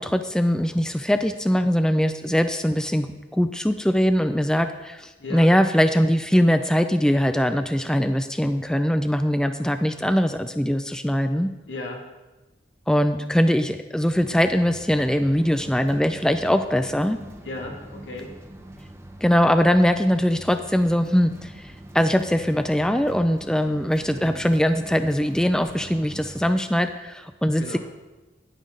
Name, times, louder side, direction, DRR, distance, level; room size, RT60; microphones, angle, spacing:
voice 1, 0.0-11.5 12.9-17.2 19.2-27.8, equal, 5° left, 8 dB, 0.4 m, -21 dB
voice 2, 11.7-12.0 17.4-18.3 24.1-24.4 27.6-27.8, left 2 dB, 90° left, 0 dB, 2.0 m, -35 dB
sound 1, 14.1-26.5, right 1 dB, 15° right, 0.8 m, -43 dB
10.5 x 9.2 x 3.8 m, 1.1 s
head